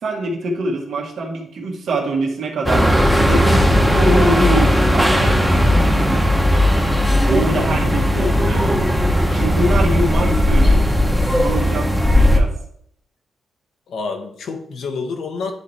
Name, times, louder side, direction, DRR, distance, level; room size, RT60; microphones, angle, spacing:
voice 1, 0.0-2.8 3.1-3.6 3.9-6.2 7.3-8.7 9.3-10.8 11.2-12.5, right 1 dB, 70° right, 1 dB, 1.6 m, -24 dB
sound 1, 2.7-12.4, left 1 dB, ahead, 1.0 m, -16 dB
voice 2, 7.5-7.8 8.2-8.3 13.9-15.5, left 4 dB, 70° left, 5 dB, 1.1 m, -28 dB
9.6 x 3.3 x 4.2 m, 0.67 s
cardioid pair, 100°, 0 cm